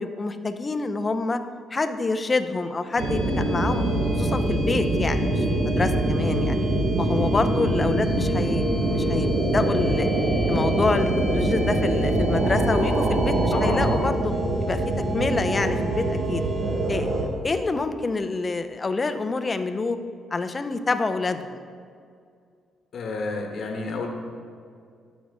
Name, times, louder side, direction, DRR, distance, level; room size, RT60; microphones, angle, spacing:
voice 1, 0.0-1.4 1.7-3.9 4.2-6.7 7.0-8.6 8.9-10.1 10.5-14.3 14.6-14.8 15.1-16.4 16.9-17.1 17.4-20.0 20.3-21.6, left 3 dB, 30° left, 9 dB, 0.6 m, -27 dB
sound 1, 3.0-17.2, right 1 dB, 65° right, 1.5 m, -23 dB
voice 2, 13.5-14.0 15.5-15.8 22.9-24.1, left 3 dB, 60° left, 2 dB, 1.1 m, -30 dB
12.0 x 6.2 x 3.6 m, 2.2 s
cardioid pair, 90°, 0 cm